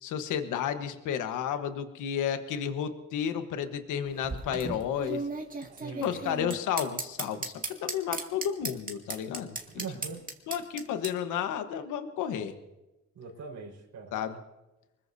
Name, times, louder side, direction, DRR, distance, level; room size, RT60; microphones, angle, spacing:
voice 1, 0.0-5.2 5.9-9.6 10.5-12.5 14.1-14.4, left 8 dB, 85° left, 8 dB, 1.3 m, -32 dB
sound 1, 4.0-11.1, right 3 dB, 25° right, 2.2 m, -36 dB
voice 2, 5.7-6.5 9.7-10.2 13.1-14.1, right 5 dB, 80° right, -2 dB, 4.7 m, -42 dB
24.5 x 21.0 x 2.7 m, 1.0 s
cardioid pair, 90°, 30 cm